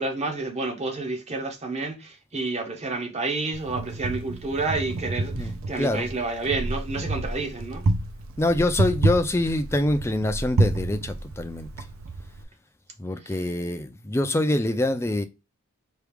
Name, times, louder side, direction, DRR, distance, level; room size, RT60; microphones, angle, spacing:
voice 1, 0.0-7.8 13.2-13.4, right 3 dB, 30° right, 0.8 m, -30 dB
Wind, 3.5-12.4, right 2 dB, 65° right, 0.5 m, -29 dB
voice 2, 5.2-6.1 8.4-11.7 13.0-15.2, left 1 dB, 10° left, 0.3 m, -25 dB
4.6 x 2.4 x 3.4 m
head